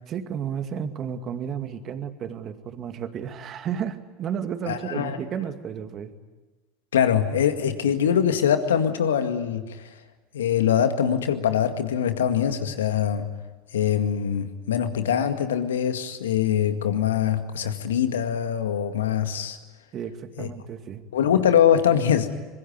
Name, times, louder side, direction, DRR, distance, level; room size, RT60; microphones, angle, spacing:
voice 1, 0.1-6.1 19.9-21.0, right 8 dB, 40° right, 8 dB, 2.3 m, -32 dB
voice 2, 4.7-5.2 6.9-9.9 10.3-13.3 13.7-19.6 20.4-20.5 21.1-22.3, left 9 dB, 80° left, 8 dB, 2.0 m, -23 dB
25.0 x 22.0 x 9.5 m, 1.2 s
hypercardioid pair, 80°, 0 cm